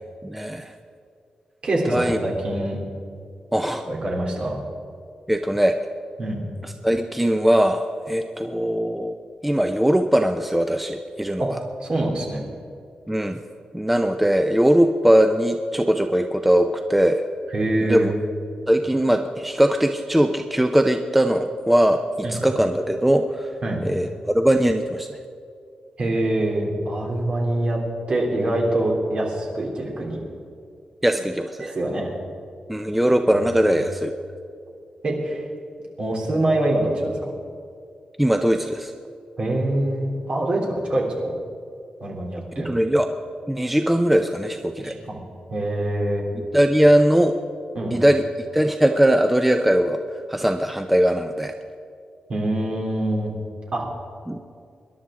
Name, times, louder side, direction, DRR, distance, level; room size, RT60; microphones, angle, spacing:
voice 1, 0.2-0.7 1.9-2.2 3.5-3.9 5.3-5.8 6.6-9.2 9.4-11.6 13.1-13.4 13.7-17.2 17.8-18.1 18.7-23.5 23.8-25.2 31.0-31.7 32.7-34.1 38.2-38.9 42.6-43.1 43.5-44.9 46.5-47.4 47.9-51.5 54.3-54.4, equal, 5° right, 6 dB, 0.5 m, -20 dB
voice 2, 1.6-2.8 3.9-4.6 6.2-6.4 11.4-11.5 11.8-12.4 17.5-18.1 22.2-22.4 23.6-23.8 26.0-27.8 28.1-30.2 31.6-32.1 33.3-33.7 35.0-35.5 36.0-37.3 39.4-41.3 42.0-42.7 44.8-45.2 45.5-46.2 47.7-48.0 52.3-53.3 53.7-53.9, right 1 dB, 45° right, -2 dB, 3.2 m, -24 dB
25.5 x 11.5 x 3.7 m, 2.4 s
wide cardioid pair, 150°, 2 cm